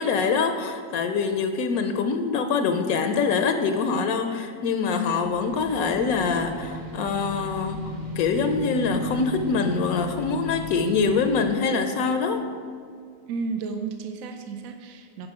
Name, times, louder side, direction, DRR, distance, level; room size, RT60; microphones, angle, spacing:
voice 1, 0.0-7.8 8.2-12.4, left 5 dB, 80° left, 7 dB, 1.0 m, -24 dB
sound 1, 5.2-11.5, left 2 dB, 50° right, 0.5 m, -35 dB
voice 2, 13.3-15.3, right 4 dB, 75° right, 6 dB, 0.9 m, -32 dB
10.5 x 5.1 x 4.8 m, 2.2 s
omnidirectional pair, 1.5 m